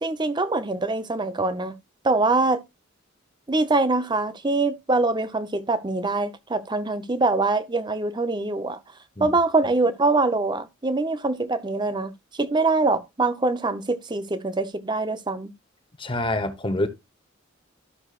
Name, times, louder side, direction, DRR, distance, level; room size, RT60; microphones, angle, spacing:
voice 1, 0.0-1.7 2.0-2.6 3.5-8.8 9.2-12.1 12.4-15.5, right 3 dB, 20° right, 0.7 m, -24 dB
voice 2, 16.0-16.9, left 1 dB, 25° left, 1.0 m, -26 dB
13.0 x 6.1 x 2.4 m
head